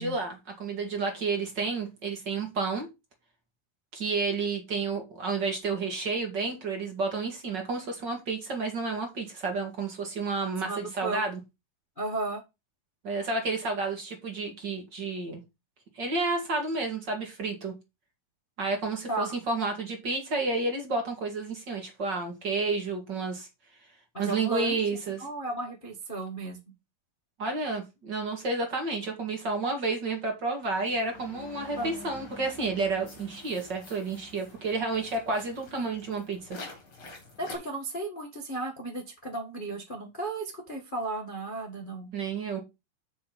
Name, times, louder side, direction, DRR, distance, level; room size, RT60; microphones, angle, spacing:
voice 1, 0.0-2.9 3.9-11.4 13.0-15.4 15.9-17.7 18.6-23.5 24.2-25.3 27.4-36.6 42.1-42.6, right 3 dB, 35° right, 2.2 m, -31 dB
voice 2, 10.6-11.3 12.0-12.4 19.1-19.3 24.1-24.8 25.2-26.6 31.8-31.9 35.8-35.9 37.4-42.1, right 2 dB, 70° left, 0.4 m, -34 dB
sound 1, 30.6-37.6, left 2 dB, 45° left, 4.2 m, -47 dB
7.3 x 6.0 x 5.5 m
omnidirectional pair, 4.3 m